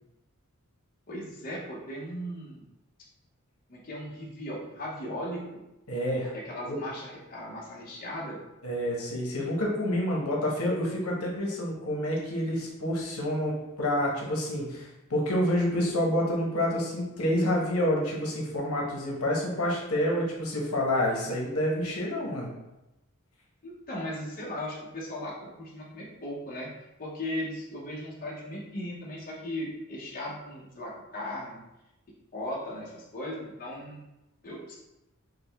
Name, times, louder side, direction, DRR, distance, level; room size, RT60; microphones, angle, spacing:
voice 1, 1.1-2.6 3.7-5.6 6.3-8.4 23.6-26.7 27.0-31.6 32.3-34.0 34.4-34.8, left 1 dB, 40° left, -4 dB, 0.8 m, -37 dB
voice 2, 5.9-6.3 6.7-6.8 8.6-22.5, left 1 dB, 85° left, -2 dB, 1.0 m, -28 dB
4.9 x 2.1 x 3.4 m, 0.94 s
head